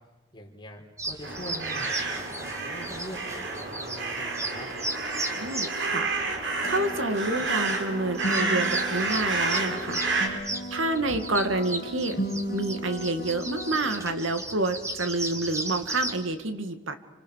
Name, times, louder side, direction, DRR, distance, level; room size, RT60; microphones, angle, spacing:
voice 1, 0.3-4.7, equal, 25° left, 1 dB, 4.3 m, -43 dB
sound 1, 1.0-16.2, right 2 dB, 15° right, 2.3 m, -36 dB
sound 2, 1.2-10.3, right 3 dB, 60° right, 4.6 m, -30 dB
voice 2, 5.3-10.4 10.7-12.2 12.5-17.0, right 2 dB, 80° right, 8 dB, 2.3 m, -29 dB
sound 3, 6.6-13.8, equal, 50° left, 2.9 m, -35 dB
29.0 x 26.0 x 6.7 m, 1.2 s
head